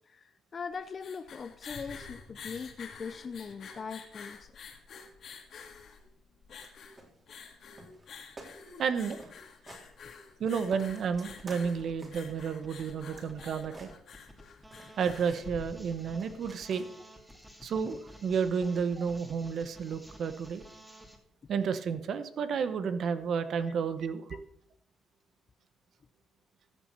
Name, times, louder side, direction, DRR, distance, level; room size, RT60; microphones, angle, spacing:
voice 1, 0.0-4.5 13.1-13.2 24.3-24.4, left 5 dB, 40° left, 10 dB, 0.6 m, -41 dB
sound 1, 0.7-16.2, left 5 dB, 60° left, 2.2 m, -49 dB
sound 2, 6.5-6.7 7.0-7.5 7.8-8.1 8.4-8.5 8.8-8.9 9.2-9.9 10.2-12.3 12.7-14.4 14.7-15.5 15.9-17.1 17.9-18.1, right 2 dB, 30° right, 3.6 m, -52 dB
voice 2, 8.8-9.2 10.4-13.9 15.0-16.9 17.6-20.6 21.5-24.2, right 6 dB, 65° right, 11 dB, 1.0 m, -31 dB
sound 3, 10.9-21.2, equal, 5° right, 2.4 m, -53 dB
14.0 x 7.3 x 5.5 m, 0.73 s
cardioid pair, 90°, 0 cm